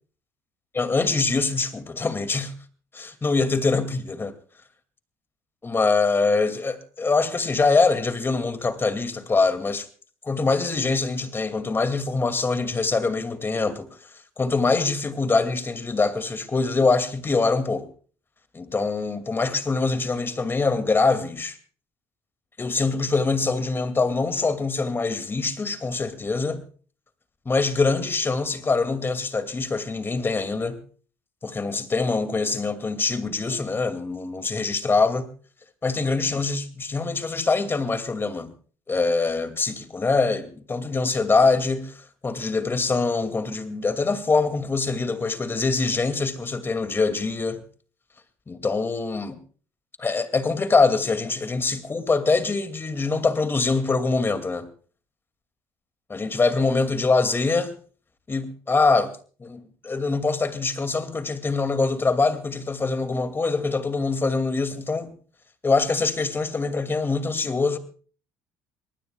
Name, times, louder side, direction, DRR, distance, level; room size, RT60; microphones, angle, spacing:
voice 1, 0.7-2.5 2.9-4.3 5.6-9.9 10.2-13.9 14.4-17.9 18.5-21.6 22.6-26.6 27.5-30.8 31.4-35.3 35.8-38.5 38.9-47.6 48.5-49.4 50.0-54.7 56.1-57.7 58.3-65.1 65.6-67.8, left 3 dB, 25° left, 2.4 m, -24 dB
25.0 x 19.5 x 2.3 m
supercardioid pair, 80°, 9 cm